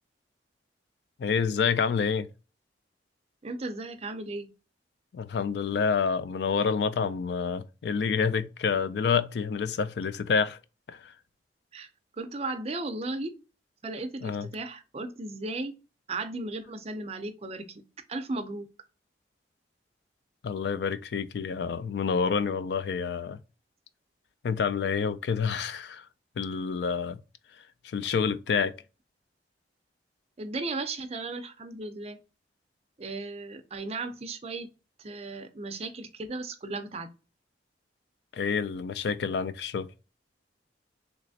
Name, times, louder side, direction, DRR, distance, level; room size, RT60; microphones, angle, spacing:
voice 1, 1.2-2.3 5.1-10.6 10.9-11.1 14.2-14.5 20.4-23.4 24.4-26.1 26.4-27.2 27.8-28.7 38.3-39.9, left 6 dB, 65° left, 0.3 m, -28 dB
voice 2, 3.4-4.5 11.7-11.9 12.2-13.3 13.8-15.7 16.1-17.8 18.1-18.7 30.4-32.2 33.0-34.7 35.0-37.1, right 2 dB, 35° right, 0.5 m, -35 dB
3.2 x 3.0 x 2.6 m
head